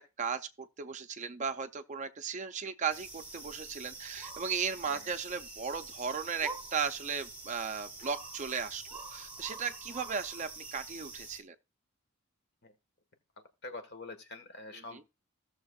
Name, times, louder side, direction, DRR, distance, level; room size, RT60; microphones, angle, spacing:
voice 1, 0.2-11.6 14.7-15.0, right 6 dB, 35° right, 0.5 m, -36 dB
sound 1, 2.9-11.4, right 3 dB, 5° right, 1.6 m, -46 dB
voice 2, 13.6-15.0, left 2 dB, 50° left, 1.5 m, -45 dB
16.5 x 6.6 x 2.4 m
head